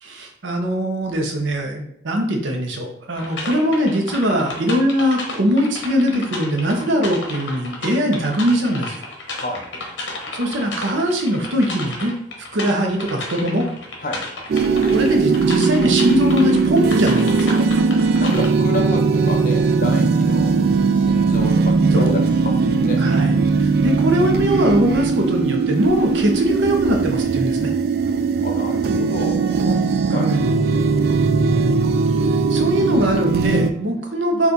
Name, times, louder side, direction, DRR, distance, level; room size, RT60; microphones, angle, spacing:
voice 1, 0.0-9.0 10.3-12.1 12.5-13.7 14.9-17.6 21.8-22.1 23.0-27.7 30.1-30.5 32.5-34.5, equal, 80° right, 3 dB, 0.8 m, -21 dB
sound 1, 3.2-18.5, left 2 dB, 85° left, 0.8 m, -33 dB
voice 2, 9.3-9.7 14.0-14.2 18.1-20.5 20.9-23.1 28.4-31.1, left 1 dB, 45° left, 3 dB, 0.6 m, -30 dB
sound 2, 14.5-33.7, right 4 dB, 55° right, 0.3 m, -19 dB
4.2 x 2.4 x 3.8 m, 0.75 s
head